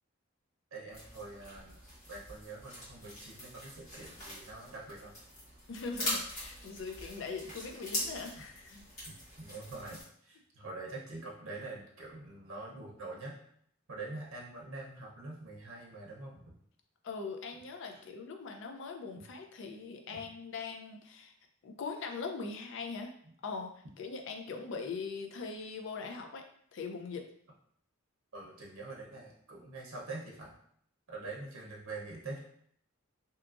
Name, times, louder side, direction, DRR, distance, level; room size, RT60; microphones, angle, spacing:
voice 1, 0.7-1.8 2.1-5.1 9.1-13.4 13.9-16.4 19.2-19.3 20.1-20.2 28.3-30.6 31.1-32.4, right 3 dB, 80° right, -2 dB, 0.7 m, -45 dB
sound 1, 0.9-10.0, left 1 dB, 35° left, 1.2 m, -42 dB
voice 2, 5.7-8.8 17.0-21.3 21.6-23.1 23.4-23.7 24.0-26.4 26.7-27.3, left 4 dB, 60° left, 4 dB, 0.4 m, -41 dB
2.8 x 2.3 x 2.4 m, 0.65 s
head